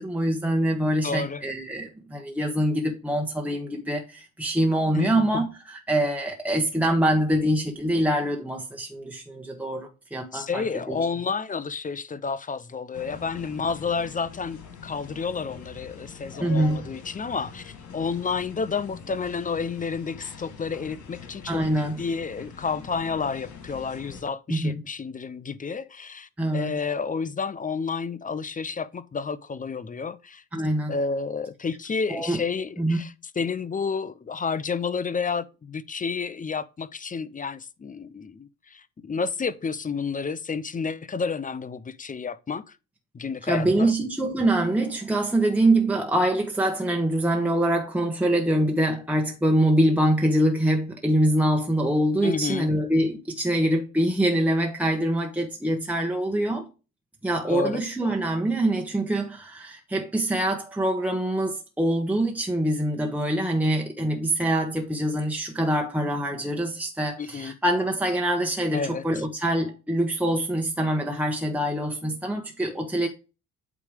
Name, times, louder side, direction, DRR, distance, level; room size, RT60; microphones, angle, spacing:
voice 1, 0.0-11.0 16.4-16.8 21.5-22.0 24.5-24.8 26.4-26.7 30.5-30.9 32.1-32.4 32.8-33.0 43.5-56.7 57.2-73.1, right 1 dB, 5° right, 1.3 m, -24 dB
voice 2, 1.0-1.4 4.9-5.4 10.3-21.6 22.0-30.4 30.9-42.6 43.1-43.9 52.2-52.7 57.5-57.8 67.2-67.6 68.7-69.1, left 5 dB, 25° left, 0.7 m, -30 dB
sound 1, 12.9-24.2, left 6 dB, 80° left, 2.6 m, -43 dB
8.5 x 3.3 x 5.0 m
cardioid pair, 90°, 30 cm